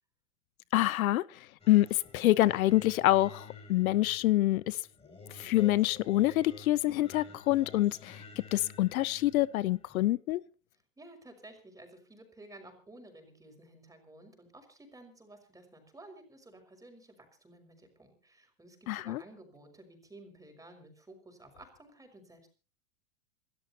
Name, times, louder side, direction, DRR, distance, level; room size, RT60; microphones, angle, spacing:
voice 1, 0.7-1.2 1.7-4.8 5.3-8.2 8.5-10.4 18.9-19.2, left 16 dB, 80° left, 0.8 m, -26 dB
Singing, 1.6-10.1, left 4 dB, 15° left, 8.0 m, -51 dB
voice 2, 11.0-22.5, right 1 dB, 10° right, 5.8 m, -54 dB
29.0 x 13.0 x 2.9 m
hypercardioid pair, 125°, 42 cm